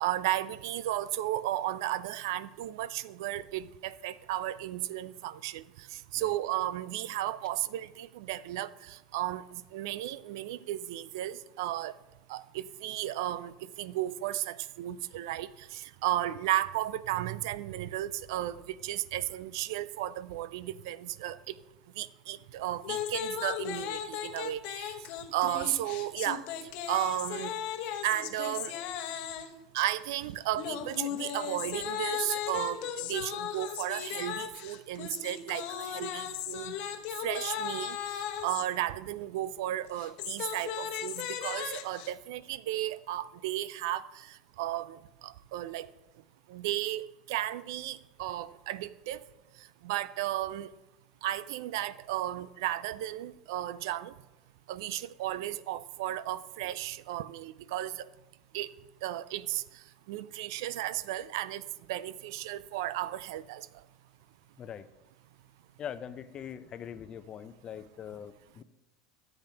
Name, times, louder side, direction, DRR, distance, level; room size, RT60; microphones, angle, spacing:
voice 1, 0.0-11.9 12.3-21.5 22.0-25.0 25.3-26.5 26.9-27.5 28.0-28.7 29.7-36.7 37.2-45.9 46.5-49.3 49.8-50.7 51.2-54.1 54.7-58.1 58.5-58.7 59.0-59.6 60.1-63.7, right 14 dB, 70° right, 0.4 m, -34 dB
sound 1, 22.8-29.6 30.6-38.7 39.9-42.1, left 9 dB, 60° left, 1.0 m, -37 dB
voice 2, 65.8-68.6, left 8 dB, 40° left, 0.6 m, -42 dB
13.0 x 8.0 x 2.9 m
hypercardioid pair, 80°, 2 cm